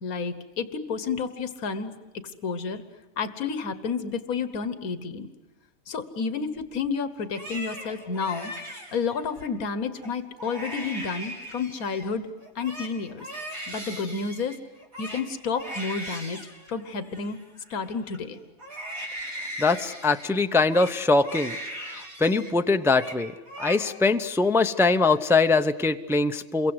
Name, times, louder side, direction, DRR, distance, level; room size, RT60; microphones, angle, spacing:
voice 1, 0.0-1.9 2.4-2.8 3.2-5.3 5.9-8.5 8.9-12.3 12.6-13.3 13.7-14.6 15.0-16.4 16.7-17.4 17.7-18.4, left 5 dB, 90° left, 11 dB, 1.8 m, -30 dB
Crying sobbing, 7.2-9.5 10.0-10.1 10.4-12.1 12.4-18.2 18.6-22.5 22.8-23.2 23.5-24.2 24.5-25.2, equal, 80° right, 4.6 m, -39 dB
voice 2, 19.6-21.6 22.2-23.3 23.6-26.7, left 3 dB, 5° right, 8 dB, 0.5 m, -22 dB
28.5 x 23.5 x 7.9 m, 1.1 s
omnidirectional pair, 1.5 m